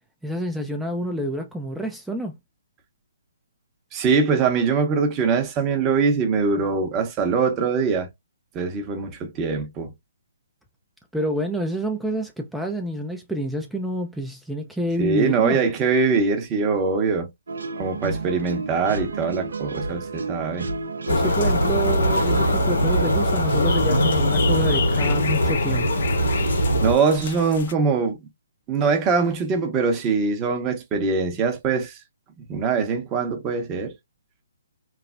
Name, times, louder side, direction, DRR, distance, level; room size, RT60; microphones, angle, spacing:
voice 1, 0.2-2.4 11.1-15.7 21.1-25.9, right 1 dB, 5° right, 0.4 m, -28 dB
voice 2, 3.9-8.1 8.5-9.9 15.0-17.3 17.8-20.7 26.8-28.2 28.7-32.0 32.5-33.9, right 5 dB, 25° right, 0.8 m, -22 dB
sound 1, 17.5-23.2, right 3 dB, 75° right, 0.5 m, -33 dB
sound 2, 21.1-26.9, equal, 90° left, 1.5 m, -21 dB
sound 3, 21.1-27.7, left 7 dB, 55° left, 0.5 m, -35 dB
3.1 x 2.0 x 2.4 m
hypercardioid pair, 140°, 0 cm